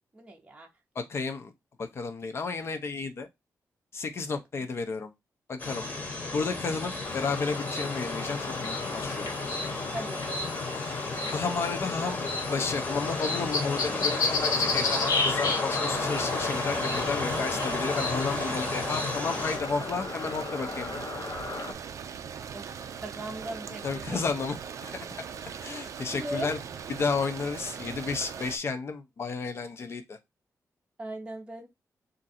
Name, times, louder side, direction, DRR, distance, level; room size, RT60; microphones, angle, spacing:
voice 1, 0.1-0.7 4.5-4.7 9.9-10.4 22.5-22.7 23.0-24.2 26.1-26.6 31.0-31.7, right 1 dB, 20° right, 0.6 m, -38 dB
voice 2, 1.0-1.5 1.8-3.3 3.9-5.1 5.5-5.9 6.3-9.2 11.3-12.2 12.5-21.0 23.8-25.1 25.6-26.6 26.9-30.2, left 4 dB, 45° left, 0.6 m, -32 dB
sound 1, 5.6-19.6, left 3 dB, 25° left, 1.0 m, -33 dB
sound 2, 7.0-21.7, left 3 dB, 70° left, 0.9 m, -33 dB
sound 3, 15.9-28.6, right 7 dB, 60° right, 0.4 m, -40 dB
3.7 x 2.6 x 4.1 m
wide cardioid pair, 175°, 6 cm